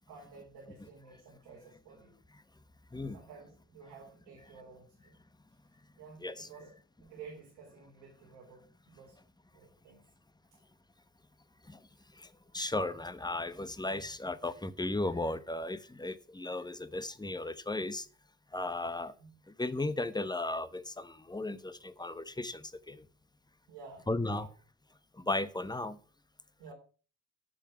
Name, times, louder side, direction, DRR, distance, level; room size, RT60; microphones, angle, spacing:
voice 1, 0.1-2.1 3.1-5.1 6.0-6.7 7.0-9.2 9.5-10.0 10.5-10.6 12.4-12.5 19.2-19.3 23.7-24.5 26.6-26.7, right 5 dB, 80° right, -2 dB, 3.7 m, -52 dB
voice 2, 12.2-18.1 18.5-19.1 19.5-23.1 24.1-24.5 25.1-26.0, left 2 dB, 10° left, 14 dB, 1.2 m, -35 dB
10.5 x 7.1 x 7.3 m, 0.39 s
hypercardioid pair, 45°, 47 cm